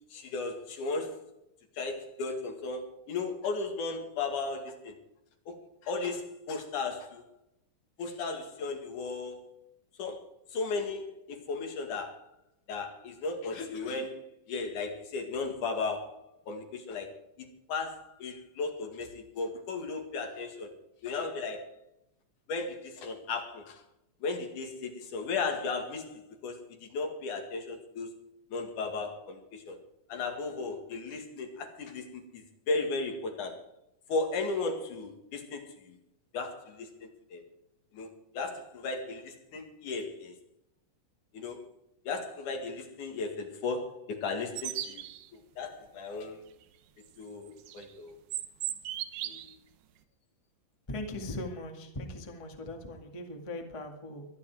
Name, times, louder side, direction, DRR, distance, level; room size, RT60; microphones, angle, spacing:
voice 1, 0.1-1.3 1.8-4.9 5.5-5.6 5.8-7.2 8.0-9.6 10.0-10.3 10.5-12.2 12.7-14.2 14.5-17.1 17.4-20.7 21.0-21.7 22.5-23.8 24.2-28.1 28.5-29.8 30.1-33.6 34.1-36.0 36.3-37.4 37.9-38.1 38.3-40.3 41.3-41.6 42.0-45.1 45.3-46.4 47.2-48.1 49.2-49.4, left 3 dB, 70° left, 4 dB, 3.4 m, -35 dB
sound 1, 44.6-45.3 47.5-47.9 48.3-49.5, right 12 dB, 85° right, 2.6 m, -36 dB
voice 2, 50.9-54.3, left 1 dB, 15° left, 3 dB, 1.3 m, -39 dB
23.0 x 9.9 x 4.7 m, 0.81 s
omnidirectional pair, 3.7 m